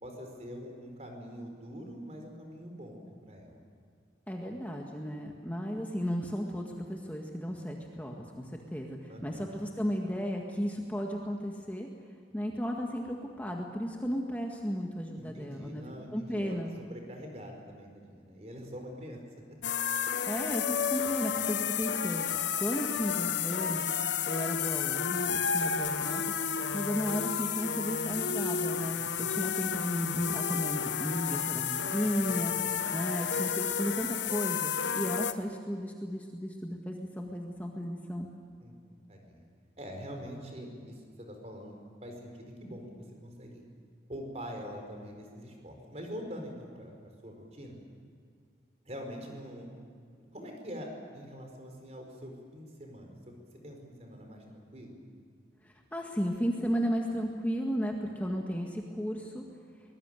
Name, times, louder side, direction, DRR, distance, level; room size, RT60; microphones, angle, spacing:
voice 1, 0.0-3.6 9.1-9.5 15.1-16.6 16.9-19.6 28.9-29.3 32.5-32.9 38.6-39.5 39.8-43.6 44.1-47.7 48.8-49.7 50.3-53.3 53.6-54.9, equal, 35° right, 3 dB, 4.7 m, -44 dB
voice 2, 4.3-11.9 12.3-15.8 16.1-16.7 20.3-23.9 24.3-26.2 26.7-38.3 55.6-59.5, equal, 10° left, 1 dB, 1.7 m, -34 dB
sound 1, 19.6-35.3, left 7 dB, 85° left, 1.0 m, -31 dB
24.0 x 20.0 x 9.1 m, 2.1 s
head